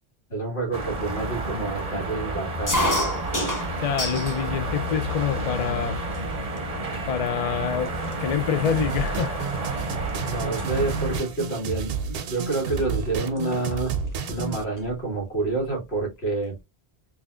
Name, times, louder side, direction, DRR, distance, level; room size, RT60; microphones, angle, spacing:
voice 1, 0.3-3.0 10.3-13.9 14.3-16.6, right 3 dB, 70° left, 2.2 m, -28 dB
sound 1, 0.7-11.2, right 2 dB, 40° right, 0.8 m, -30 dB
sound 2, 2.7-4.4 4.8-5.5 6.1-6.2 6.5-6.9 7.5-7.6 7.8-10.1 10.4-10.7 12.0-12.3 13.4-13.5 13.7-13.8 14.1-15.0, equal, 20° left, 0.9 m, -29 dB
voice 2, 3.8-6.0 7.1-7.9 8.2-9.4 9.7-9.8, left 8 dB, 50° left, 0.4 m, -26 dB
sound 3, 8.6-14.6, right 5 dB, 65° right, 0.8 m, -31 dB
4.0 x 2.8 x 2.4 m
omnidirectional pair, 1.1 m